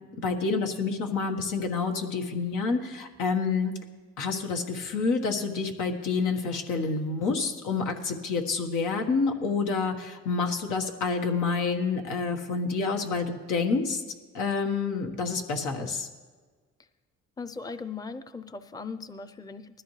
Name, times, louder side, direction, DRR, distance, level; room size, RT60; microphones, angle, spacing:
voice 1, 0.1-3.7 4.2-14.0 14.3-16.1, left 4 dB, 90° left, 3 dB, 1.6 m, -28 dB
voice 2, 17.4-19.8, left 4 dB, 10° left, 11 dB, 0.6 m, -39 dB
19.5 x 13.5 x 3.3 m, 1.4 s
cardioid pair, 90°, 30 cm